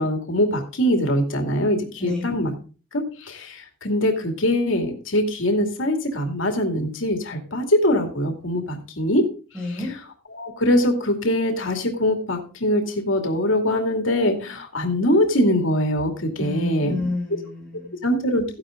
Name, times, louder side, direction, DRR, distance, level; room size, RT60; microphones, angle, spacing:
voice 1, 0.0-2.5 2.9-9.3 10.3-17.1 18.0-18.4, left 1 dB, 85° left, 4 dB, 2.6 m, -22 dB
voice 2, 2.0-2.3 9.5-9.9 16.4-18.1, left 2 dB, 5° left, -3 dB, 6.8 m, -29 dB
14.5 x 11.5 x 3.7 m, 0.37 s
head